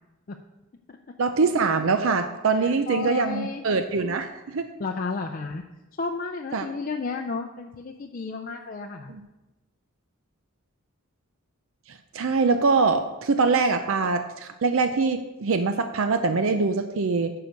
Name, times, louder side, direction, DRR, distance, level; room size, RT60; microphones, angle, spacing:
voice 1, 1.2-4.7 6.5-6.7 9.1-9.2 11.9-17.3, right 4 dB, 70° right, 8 dB, 0.5 m, -23 dB
voice 2, 2.5-3.6 4.8-5.6 6.0-9.1, left 4 dB, 40° left, 3 dB, 0.5 m, -32 dB
9.4 x 5.8 x 5.2 m, 1.0 s
head